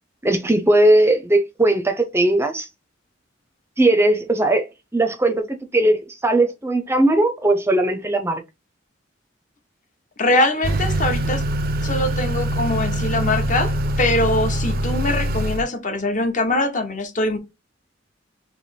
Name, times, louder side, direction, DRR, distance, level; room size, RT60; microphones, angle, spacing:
voice 1, 0.2-2.7 3.8-4.7 4.9-8.4, right 1 dB, 15° right, 0.6 m, -18 dB
voice 2, 10.2-11.4 11.8-17.4, left 2 dB, 40° left, 1.0 m, -22 dB
Motor vehicle (road) / Accelerating revving vroom, 10.6-15.6, right 1 dB, 50° right, 0.5 m, -23 dB
3.4 x 2.9 x 4.3 m
head